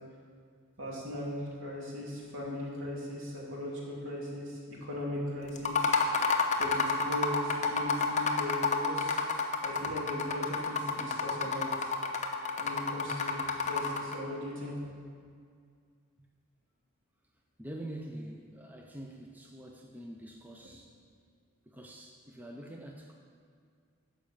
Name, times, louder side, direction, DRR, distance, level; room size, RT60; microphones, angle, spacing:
voice 1, 0.8-5.9 6.6-9.2 9.6-11.9 12.6-13.4 13.7-14.7, left 1 dB, 60° right, -4 dB, 2.7 m, -38 dB
sound 1, 5.6-14.2, left 4 dB, 35° left, 0.8 m, -29 dB
voice 2, 17.6-20.9 21.7-23.1, right 1 dB, 10° right, 1 dB, 0.5 m, -45 dB
12.0 x 5.2 x 7.3 m, 2.2 s
head